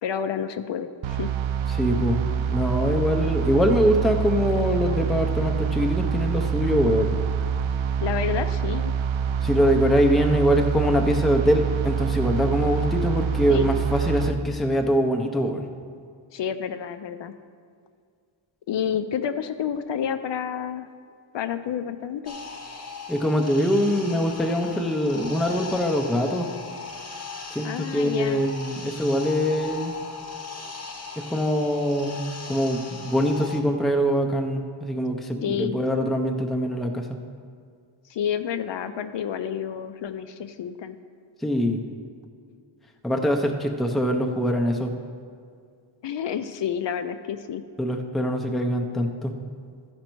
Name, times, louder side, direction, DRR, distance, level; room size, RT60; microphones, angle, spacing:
voice 1, 0.0-1.3 8.0-8.9 13.5-13.7 16.3-17.4 18.7-20.9 21.3-22.4 27.6-28.4 35.4-35.8 38.1-41.0 46.0-47.6, left 8 dB, 60° left, 10 dB, 0.5 m, -29 dB
sound 1, 1.0-14.3, right 7 dB, 70° right, 0.6 m, -26 dB
voice 2, 1.7-7.2 9.4-15.7 23.1-26.5 27.5-29.9 31.2-37.2 41.4-41.8 43.0-44.9 47.8-49.4, equal, ahead, 3 dB, 0.4 m, -23 dB
sound 2, 22.3-33.6, left 4 dB, 30° left, 0.8 m, -38 dB
13.5 x 5.2 x 4.5 m, 2.2 s
wide cardioid pair, 165°, 49 cm